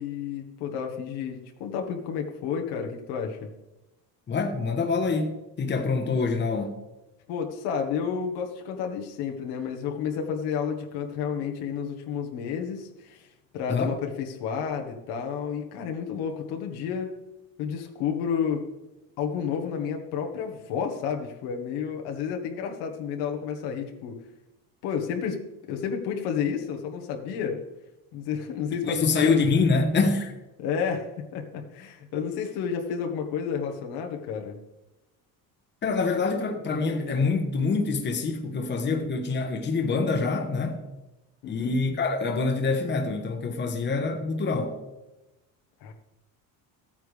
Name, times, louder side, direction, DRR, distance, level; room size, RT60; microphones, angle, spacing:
voice 1, 0.0-3.5 7.3-13.3 13.5-17.2 17.6-18.6 19.2-24.2 24.8-25.4 25.7-27.6 28.1-29.5 30.6-34.6 41.4-41.8 45.8-45.9, left 7 dB, 85° left, 1.6 m, -31 dB
voice 2, 4.3-6.8 13.7-14.0 28.7-30.4 35.8-40.8 41.5-44.8, left 4 dB, 30° left, 1.2 m, -26 dB
14.0 x 9.1 x 3.4 m
cardioid pair, 150°, 38 cm